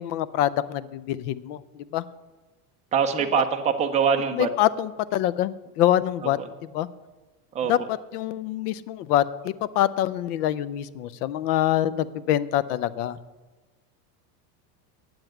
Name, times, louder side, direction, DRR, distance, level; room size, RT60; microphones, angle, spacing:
voice 1, 0.0-1.6 1.9-2.0 4.3-6.4 6.7-6.9 7.7-13.2, left 12 dB, 80° left, 17 dB, 0.7 m, -25 dB
voice 2, 2.9-4.5 6.4-6.5 7.5-7.7, right 7 dB, 15° right, 4 dB, 0.6 m, -23 dB
8.8 x 7.9 x 9.0 m, 1.2 s
supercardioid pair, 165°, 46 cm